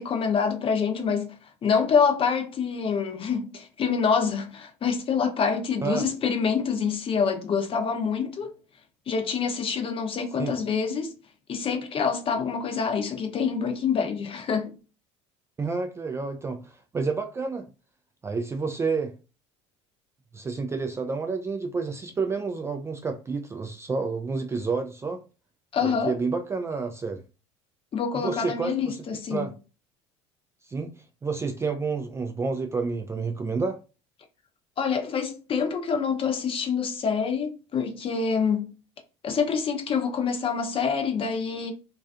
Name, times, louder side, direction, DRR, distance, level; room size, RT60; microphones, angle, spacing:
voice 1, 0.0-1.3 1.6-8.6 9.1-11.1 11.5-14.7 25.7-26.2 27.9-29.5 34.8-38.7 39.2-41.7, left 6 dB, 35° left, 0.7 m, -26 dB
voice 2, 15.6-17.7 18.2-19.1 20.3-25.2 25.8-27.2 28.1-29.0 29.3-29.5 30.7-30.9 31.2-33.8, right 4 dB, 15° right, 0.3 m, -29 dB
2.4 x 2.4 x 2.3 m
hypercardioid pair, 75°, 16 cm